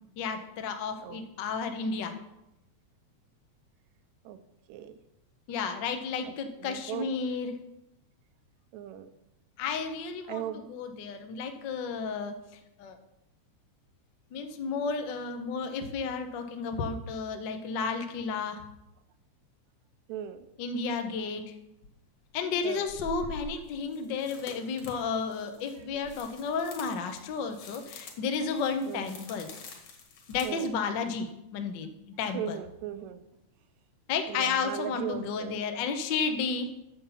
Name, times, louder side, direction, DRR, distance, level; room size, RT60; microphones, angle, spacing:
voice 1, 0.2-2.1 5.5-7.6 9.6-12.3 12.8-13.0 14.3-18.6 20.6-21.6 22.3-29.5 30.3-31.9 32.2-32.6 34.1-36.7, left 5 dB, 80° left, 6 dB, 1.0 m, -32 dB
voice 2, 6.6-7.1 8.7-9.1 10.3-10.6 20.1-20.4 22.6-22.8 28.9-29.1 30.4-30.7 32.3-33.2 34.3-35.6, right 10 dB, 75° right, 10 dB, 1.9 m, -37 dB
Walking on dry leaves and twigs, 21.8-21.9 22.8-30.7, left 3 dB, 65° left, 2.9 m, -47 dB
9.2 x 7.0 x 5.7 m, 0.87 s
omnidirectional pair, 3.5 m